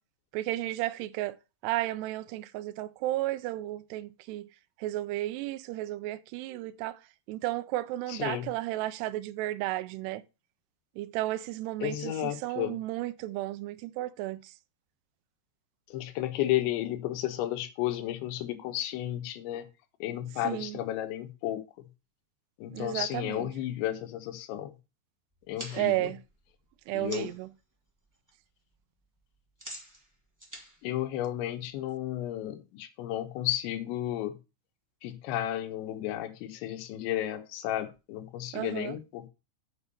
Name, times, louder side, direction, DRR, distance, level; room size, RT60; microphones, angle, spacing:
voice 1, 0.3-1.4 1.6-4.5 4.8-7.0 7.3-10.2 11.0-14.5 20.4-20.8 22.7-23.5 25.7-26.2 26.9-27.5 38.5-39.0, right 16 dB, 80° right, 2.5 m, -33 dB
voice 2, 8.1-8.4 11.8-12.7 15.9-19.7 20.0-21.6 22.6-24.7 25.5-26.1 26.9-27.3 30.8-34.3 35.0-39.3, left 13 dB, 80° left, 3.3 m, -33 dB
sound 1, 25.3-27.5 27.9-28.3 28.6-31.8, equal, 10° right, 0.9 m, -47 dB
7.0 x 6.0 x 6.7 m
omnidirectional pair, 5.4 m